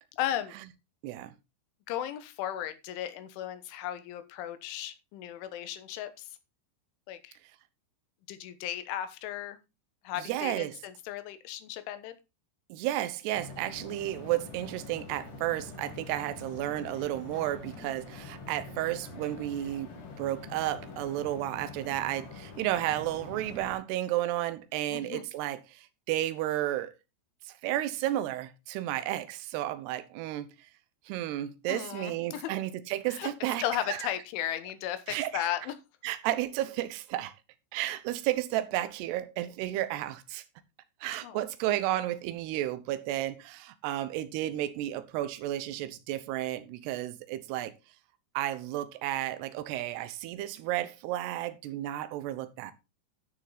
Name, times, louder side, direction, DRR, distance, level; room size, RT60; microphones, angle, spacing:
voice 1, 0.2-0.5 1.9-6.3 7.1-7.4 8.3-9.6 10.1-12.2 24.9-25.2 31.7-32.5 33.1-33.3 33.6-35.8 41.2-41.4, left 12 dB, 80° left, 3.5 m, -35 dB
voice 2, 10.2-10.8 12.7-19.9 20.2-26.9 27.5-30.5 31.1-34.1 35.1-35.5 36.0-37.3 37.7-40.4 41.0-47.7 48.3-52.7, right 14 dB, 75° right, 2.7 m, -32 dB
sound 1, 13.3-23.7, left 4 dB, 55° left, 1.6 m, -45 dB
12.5 x 6.6 x 4.1 m
omnidirectional pair, 5.6 m